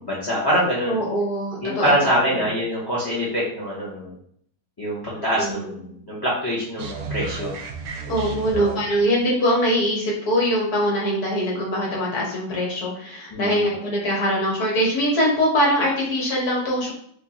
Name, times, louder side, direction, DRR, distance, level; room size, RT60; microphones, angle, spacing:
voice 1, 0.0-1.0 1.6-4.1 4.8-7.5 8.5-8.7 13.3-13.6, equal, 20° left, -6 dB, 0.6 m, -24 dB
voice 2, 0.9-2.4 5.1-5.7 8.1-16.9, equal, 65° left, -4 dB, 1.6 m, -23 dB
sound 1, 6.8-9.1, right 4 dB, 85° right, 0.6 m, -33 dB
4.6 x 2.3 x 2.8 m, 0.65 s
omnidirectional pair, 1.8 m